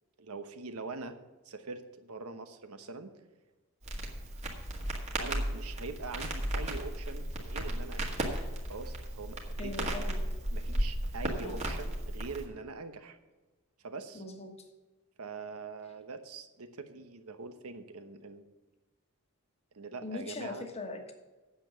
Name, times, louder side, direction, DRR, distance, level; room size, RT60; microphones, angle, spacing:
voice 1, 0.2-1.2 1.4-3.1 5.2-8.3 8.7-10.1 10.5-13.2 13.8-14.2 15.2-18.4 19.7-20.7, right 4 dB, 75° right, 8 dB, 1.0 m, -43 dB
Crackle, 3.8-12.5, right 1 dB, 30° right, 1.8 m, -35 dB
voice 2, 9.6-10.2 11.4-11.6 14.1-14.6 20.0-21.1, left 2 dB, 30° left, 4 dB, 1.4 m, -40 dB
9.0 x 7.0 x 7.4 m, 1.2 s
head